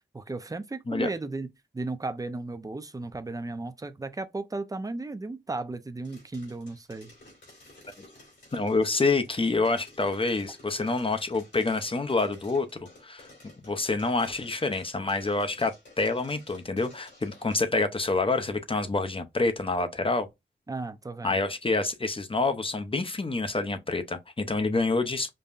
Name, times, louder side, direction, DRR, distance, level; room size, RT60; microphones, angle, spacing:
voice 1, 0.1-1.5 1.7-7.1 20.7-21.4, right 3 dB, 20° right, 0.5 m, -35 dB
sound 1, 6.0-17.5, left 2 dB, 80° left, 2.6 m, -53 dB
voice 2, 8.5-13.3 13.6-15.7 16.0-20.3 21.2-25.3, left 3 dB, 30° left, 0.7 m, -27 dB
5.3 x 2.2 x 2.4 m
cardioid pair, 55°, 18 cm